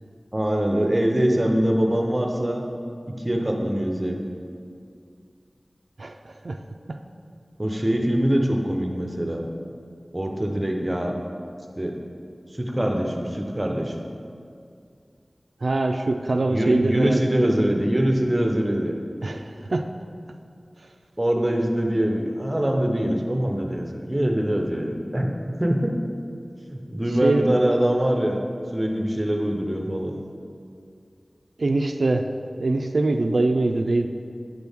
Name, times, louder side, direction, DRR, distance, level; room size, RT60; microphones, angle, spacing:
voice 1, 0.3-2.6 3.1-4.2 7.6-9.5 10.1-11.1 11.8-12.0 12.5-14.0 16.5-18.9 21.2-25.3 25.6-26.0 26.7-28.4 28.7-30.1, equal, 25° right, 2 dB, 0.8 m, -23 dB
voice 2, 6.0-6.6 6.9-7.0 15.6-17.2 19.2-19.9 27.2-27.5 31.6-32.3 32.6-34.1, right 2 dB, 80° right, 5 dB, 0.3 m, -23 dB
8.9 x 6.0 x 3.6 m, 2.3 s
wide cardioid pair, 60°, 0 cm